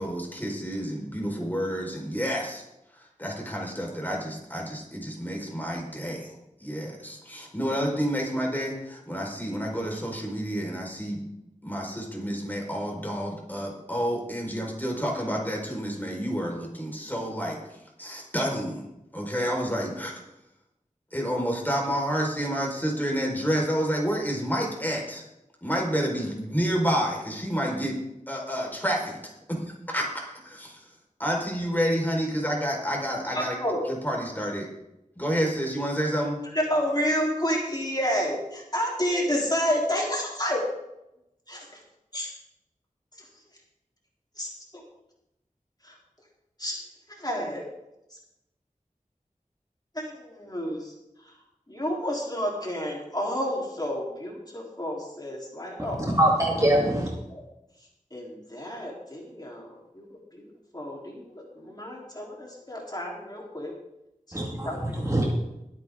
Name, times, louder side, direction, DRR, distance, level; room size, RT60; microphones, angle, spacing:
voice 1, 0.0-2.6 2.9-11.2 11.6-18.9 19.1-20.1 21.1-25.2 25.6-28.0 28.3-29.2 29.5-30.9 31.2-33.6 33.8-34.7 35.2-36.4, equal, 15° left, -1 dB, 4.6 m, -29 dB
voice 2, 33.3-33.9 36.5-40.6 41.5-41.6 42.1-42.3 44.4-44.8 45.8-45.9 46.6-46.8 47.2-47.6 49.9-50.9 51.7-56.2 57.3-57.4 58.1-60.0 60.3-60.4 60.7-63.7 64.3-65.3, equal, 30° left, -2 dB, 3.6 m, -30 dB
voice 3, 55.8-57.1 64.3-65.3, right 1 dB, 25° right, -2 dB, 2.1 m, -24 dB
22.0 x 8.8 x 3.7 m, 0.89 s
wide cardioid pair, 50°, 14 cm